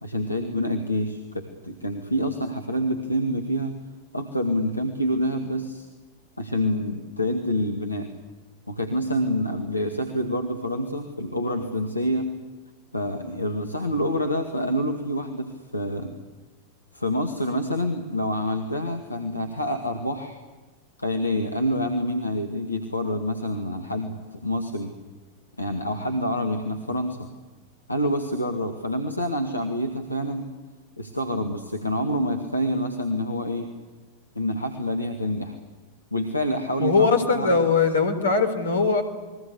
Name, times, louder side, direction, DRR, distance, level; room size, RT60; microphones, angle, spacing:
voice 1, 0.0-3.8 4.1-5.9 6.4-8.1 8.7-12.3 12.9-16.1 16.9-20.4 21.0-24.9 25.6-27.3 27.9-30.5 31.0-33.7 34.4-35.6 36.1-37.5, equal, 85° left, 5 dB, 2.0 m, -27 dB
voice 2, 36.8-39.0, left 4 dB, 70° left, 8 dB, 3.9 m, -20 dB
29.5 x 21.5 x 8.3 m, 1.3 s
figure-of-eight pair, 90°, 0 cm